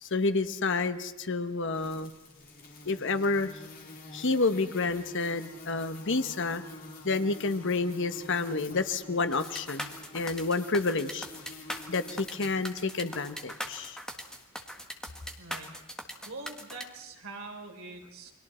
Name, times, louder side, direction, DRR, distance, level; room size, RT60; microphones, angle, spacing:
voice 1, 0.0-2.1 2.8-3.5 4.1-6.6 7.0-11.3 11.9-14.0, left 3 dB, 60° left, 10 dB, 1.2 m, -29 dB
sound 1, 1.7-14.5, left 2 dB, 45° left, 3.6 m, -49 dB
sound 2, 9.3-16.8, equal, 5° left, 1.7 m, -40 dB
voice 2, 15.4-15.7 16.2-18.3, right 3 dB, 75° right, 2 dB, 3.9 m, -43 dB
29.5 x 23.5 x 4.4 m, 1.1 s
head